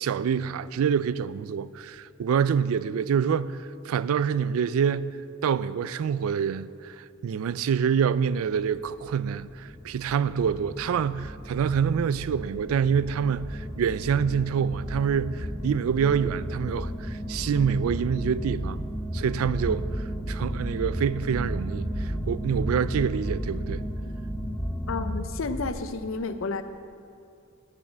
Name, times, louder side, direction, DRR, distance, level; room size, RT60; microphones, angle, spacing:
voice 1, 0.0-5.2 5.4-18.9 19.1-23.8, right 7 dB, 90° right, 0.3 m, -26 dB
sound 1, 8.7-25.9, equal, 10° left, 0.5 m, -33 dB
voice 2, 24.9-26.6, left 3 dB, 70° left, 0.6 m, -31 dB
9.6 x 7.6 x 7.4 m
head